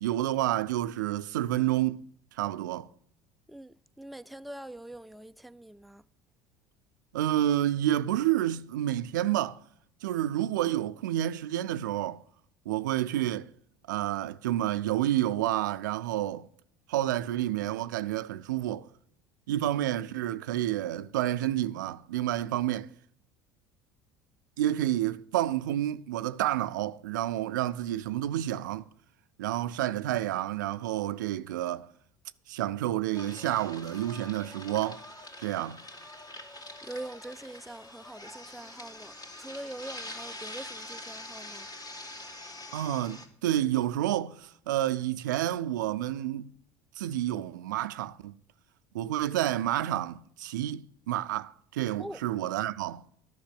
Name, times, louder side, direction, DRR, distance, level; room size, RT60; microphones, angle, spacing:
voice 1, 0.0-2.1 2.4-2.9 7.1-9.6 10.0-12.2 12.7-13.5 13.9-16.5 16.9-18.9 19.5-22.9 24.6-28.9 29.4-31.9 32.5-35.0 35.4-35.8 42.7-46.5 47.0-48.3 48.9-53.0, right 13 dB, 85° right, 0.4 m, -29 dB
voice 2, 3.5-6.0 36.8-41.7 52.0-52.2, right 1 dB, ahead, 0.4 m, -43 dB
sound 1, 33.1-43.3, left 1 dB, 40° left, 2.4 m, -44 dB
10.5 x 6.0 x 8.5 m
hypercardioid pair, 80°, 10 cm